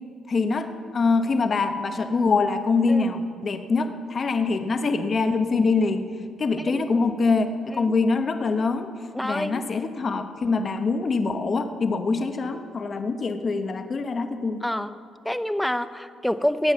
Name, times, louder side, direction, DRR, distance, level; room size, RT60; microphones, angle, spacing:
voice 1, 0.3-6.1 6.4-8.9 9.2-14.6, left 4 dB, 45° left, 7 dB, 1.0 m, -24 dB
voice 2, 9.1-9.6 14.6-14.9 15.2-16.7, equal, 5° left, 12 dB, 0.6 m, -27 dB
16.0 x 9.0 x 7.5 m, 2.3 s
cardioid pair, 90°, 0 cm